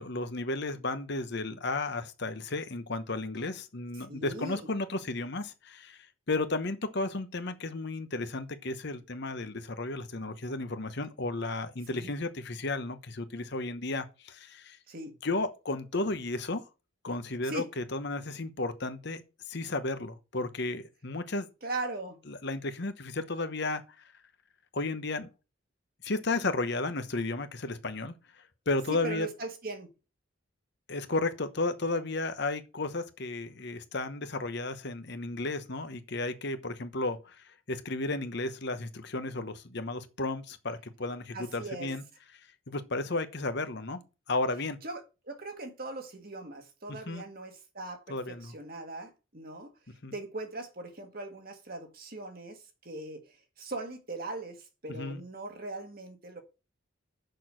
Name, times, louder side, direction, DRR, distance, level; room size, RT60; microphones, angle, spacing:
voice 1, 0.0-14.8 15.2-16.6 17.0-19.2 19.5-21.5 22.3-23.8 24.7-25.3 26.0-29.3 30.9-42.0 42.7-44.0 44.3-44.8 46.9-47.2 48.1-48.5 50.0-50.1 54.9-55.2, left 2 dB, 55° left, 1.0 m, -33 dB
voice 2, 4.1-4.7 11.9-12.1 14.9-15.2 17.4-17.7 21.6-22.2 28.9-29.9 41.3-41.9 44.8-49.7 50.1-56.4, right 2 dB, 45° right, 1.7 m, -40 dB
6.7 x 6.2 x 6.2 m
head